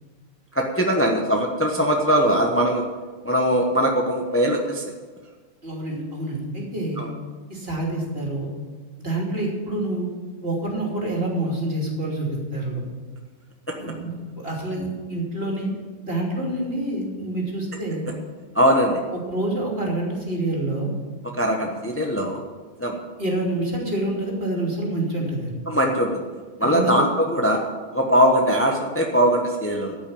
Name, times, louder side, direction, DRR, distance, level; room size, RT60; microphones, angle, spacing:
voice 1, 0.5-2.8 3.2-4.8 7.0-7.1 13.7-13.8 18.5-19.0 21.4-22.4 22.8-23.0 25.7-26.2 26.6-27.6 27.9-29.9, equal, 10° left, 1 dB, 1.0 m, -21 dB
voice 2, 5.6-7.0 7.5-8.5 9.0-10.1 10.4-12.8 13.8-15.7 16.0-18.0 19.3-20.9 23.2-25.5 26.6-26.9, right 1 dB, 45° right, -2 dB, 3.2 m, -27 dB
13.5 x 6.2 x 8.6 m, 1.4 s
omnidirectional pair, 1.4 m